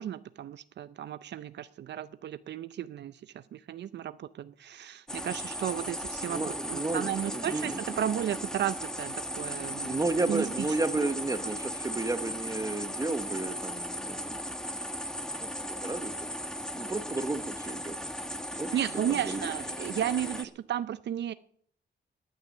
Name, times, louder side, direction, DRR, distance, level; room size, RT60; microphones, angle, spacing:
voice 1, 0.0-6.4 6.7-10.0 10.3-10.5 11.0-11.1 11.4-11.5 18.7-21.3, right 10 dB, 70° right, 0.5 m, -34 dB
sound 1, 5.1-20.4, equal, 5° left, 1.2 m, -37 dB
voice 2, 6.2-7.8 9.8-14.4 15.4-16.3 16.7-18.0 18.6-18.8 19.1-19.5, right 3 dB, 20° right, 1.1 m, -32 dB
18.0 x 9.4 x 6.7 m
cardioid pair, 100°, 19 cm